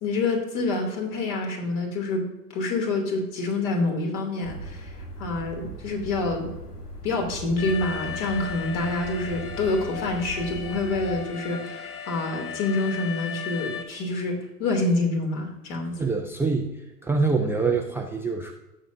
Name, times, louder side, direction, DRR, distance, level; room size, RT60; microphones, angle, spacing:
voice 1, 0.0-2.2 2.5-4.9 5.2-6.5 7.0-15.9, left 2 dB, 50° left, 2 dB, 3.0 m, -27 dB
sound 1, 4.4-11.2, right 1 dB, 90° left, 1.4 m, -39 dB
Alarm, 7.6-13.8, left 8 dB, 75° left, 1.5 m, -36 dB
voice 2, 16.0-16.7 17.0-18.5, right 4 dB, 5° right, 1 dB, 0.5 m, -25 dB
17.0 x 6.4 x 2.7 m, 0.99 s
figure-of-eight pair, 90°, 46 cm